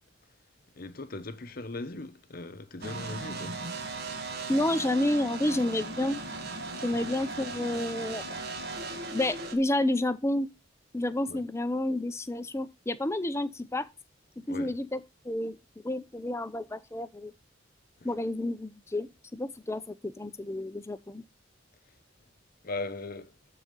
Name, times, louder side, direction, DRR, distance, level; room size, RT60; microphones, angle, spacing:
voice 1, 0.7-3.6 6.9-7.1 11.3-11.4 14.5-14.7 22.6-23.4, left 2 dB, 45° left, 0.8 m, -39 dB
sound 1, 2.8-9.5, right 3 dB, 50° right, 1.5 m, -37 dB
voice 2, 4.5-6.2 6.8-8.4 9.1-10.5 10.9-13.9 14.4-15.6 15.8-17.3 18.0-21.2, left 1 dB, 15° left, 0.5 m, -30 dB
12.5 x 4.2 x 3.7 m
head